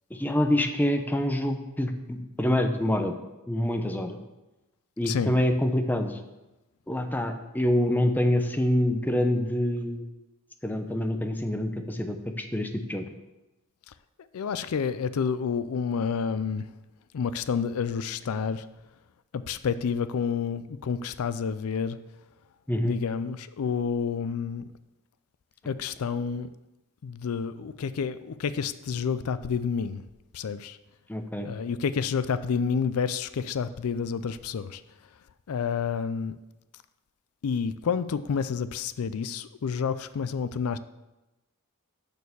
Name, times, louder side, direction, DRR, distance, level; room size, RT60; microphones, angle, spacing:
voice 1, 0.1-3.2 3.5-4.2 5.0-6.2 6.9-10.0 10.6-13.0 22.7-23.0 31.1-31.5, left 1 dB, 10° left, 5 dB, 0.6 m, -26 dB
voice 2, 14.3-16.6 17.1-18.6 19.3-22.0 22.8-24.6 25.7-26.5 27.0-30.0 30.3-30.8 31.4-34.8 35.5-36.4 37.4-40.8, left 6 dB, 80° left, 14 dB, 0.4 m, -29 dB
6.7 x 6.5 x 6.9 m, 1.0 s
head